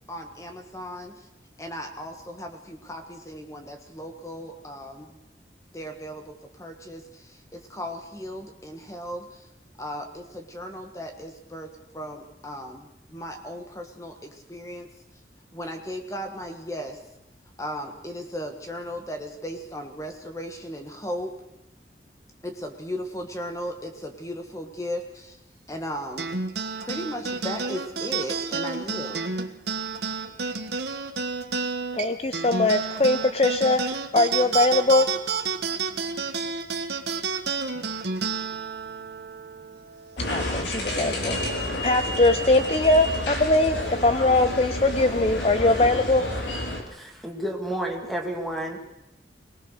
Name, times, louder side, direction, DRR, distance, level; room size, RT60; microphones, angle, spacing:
voice 1, 0.1-1.3 1.6-5.2 5.7-9.5 9.8-14.9 15.5-17.0 17.6-21.3 22.4-25.4 25.7-26.4 26.8-29.3, equal, 20° left, 5 dB, 1.5 m, -36 dB
sound 1, 26.2-40.9, right 5 dB, 75° right, 1.5 m, -30 dB
voice 2, 31.9-35.1 40.2-41.4 41.8-46.2, left 2 dB, 35° left, 10 dB, 0.7 m, -21 dB
sound 2, 40.2-46.8, left 1 dB, 90° left, 4.4 m, -30 dB
voice 3, 46.9-48.8, right 1 dB, ahead, 3 dB, 2.5 m, -31 dB
23.0 x 19.5 x 6.5 m, 0.86 s
head